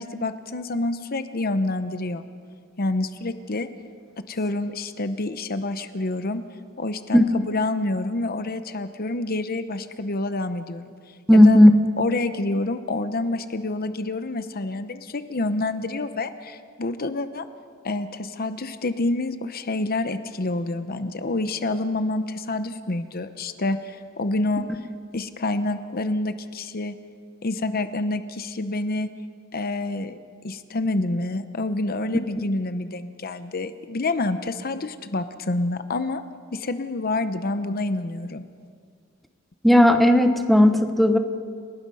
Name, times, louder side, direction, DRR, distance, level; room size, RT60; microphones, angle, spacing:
voice 1, 0.0-2.2 2.8-3.7 4.2-6.4 6.8-10.9 11.3-11.6 12.0-17.4 17.8-24.6 25.1-27.0 27.4-29.1 29.5-30.2 30.4-36.2 36.5-38.4, left 2 dB, 45° left, 10 dB, 0.8 m, -27 dB
voice 2, 11.3-11.7 39.6-41.2, left 1 dB, ahead, 6 dB, 1.1 m, -14 dB
30.0 x 18.5 x 5.5 m, 2.1 s
head